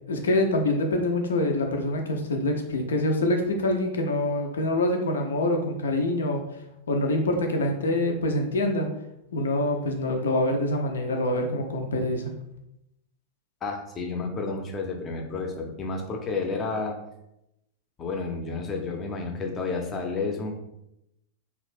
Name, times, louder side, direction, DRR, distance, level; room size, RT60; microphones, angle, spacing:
voice 1, 0.1-6.4 6.9-8.9 9.3-12.3, left 1 dB, 65° left, 3 dB, 0.5 m, -25 dB
voice 2, 13.6-17.0 18.0-20.5, left 4 dB, 25° left, 2 dB, 0.6 m, -31 dB
2.9 x 2.5 x 3.4 m, 0.84 s
figure-of-eight pair, 90°, 0 cm